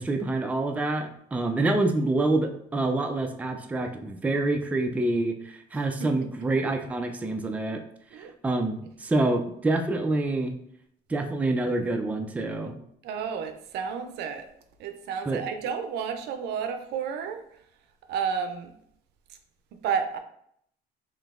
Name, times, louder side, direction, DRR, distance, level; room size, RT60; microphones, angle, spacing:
voice 1, 0.0-7.8 8.2-10.6 11.1-12.8 15.3-15.4, right 2 dB, 10° right, 5 dB, 0.3 m, -27 dB
voice 2, 6.0-6.3 8.1-8.3 13.0-14.5 14.8-17.4 18.1-18.7 19.3-19.4 19.7-20.2, right 7 dB, 80° right, 7 dB, 0.5 m, -31 dB
3.7 x 2.7 x 2.4 m, 0.70 s
cardioid pair, 110°, 17 cm